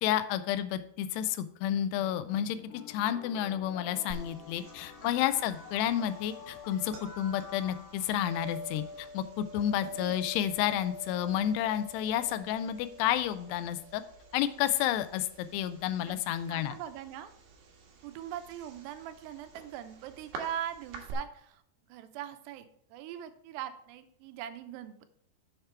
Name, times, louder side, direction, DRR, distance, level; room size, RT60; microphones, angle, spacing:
voice 1, 0.0-2.6 2.9-14.0 14.3-16.7, left 11 dB, 90° left, 12 dB, 2.7 m, -31 dB
sound 1, 2.0-9.0, left 5 dB, 65° left, 2.6 m, -49 dB
sound 2, 4.1-21.1, right 1 dB, 65° right, 2.8 m, -48 dB
voice 2, 9.8-10.2 16.0-16.2 16.5-17.3 18.0-21.6 21.9-25.1, right 11 dB, 90° right, 10 dB, 2.9 m, -41 dB
7.3 x 6.6 x 4.5 m, 0.68 s
omnidirectional pair, 4.7 m